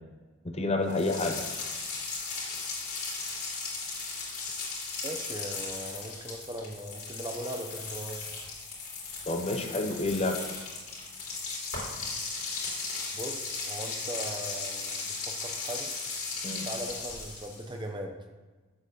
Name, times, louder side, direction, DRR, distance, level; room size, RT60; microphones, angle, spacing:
voice 1, 0.4-1.4 9.3-10.4 16.4-16.7, left 2 dB, 30° left, 5 dB, 0.7 m, -29 dB
sound 1, 0.9-17.7, left 4 dB, 90° left, 3.5 m, -37 dB
voice 2, 5.0-8.2 13.1-15.9 16.6-18.2, right 1 dB, 20° right, 4 dB, 0.7 m, -39 dB
7.9 x 6.0 x 6.8 m, 1.3 s
head